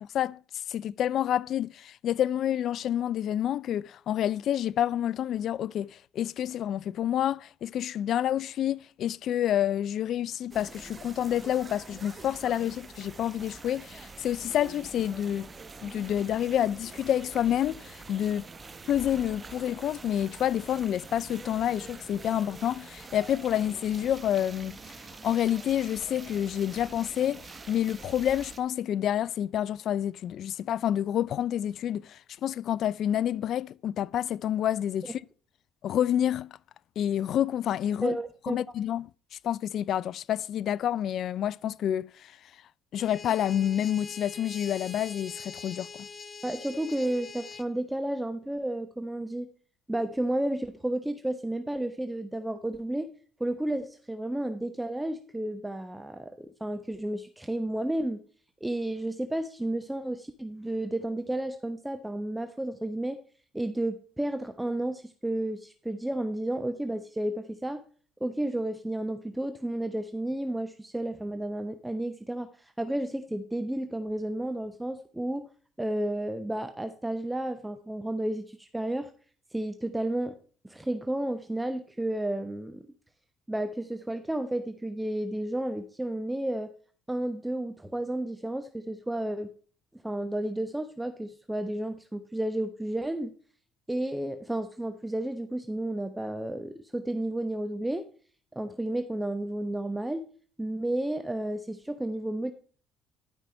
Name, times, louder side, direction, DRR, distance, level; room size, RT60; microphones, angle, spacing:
voice 1, 0.7-15.5 15.8-18.5 18.9-24.8 25.2-35.2 35.8-36.5 37.0-38.2 38.5-39.1 39.4-42.3 42.9-46.1, left 10 dB, 60° left, 0.3 m, -28 dB
sound 1, 10.5-28.6, right 4 dB, 30° right, 1.2 m, -45 dB
voice 2, 38.0-38.6 46.4-49.5 49.9-53.1 53.4-58.2 58.6-63.2 63.5-67.8 68.2-75.5 75.8-79.1 79.5-80.3 80.6-82.9 83.5-86.7 87.1-89.5 90.0-93.3 93.9-98.1 98.5-100.2 100.6-102.5, right 1 dB, 10° right, 0.9 m, -32 dB
sound 2, 43.0-47.7, left 5 dB, 35° left, 0.8 m, -44 dB
12.0 x 5.5 x 4.4 m
supercardioid pair, 70°, 0 cm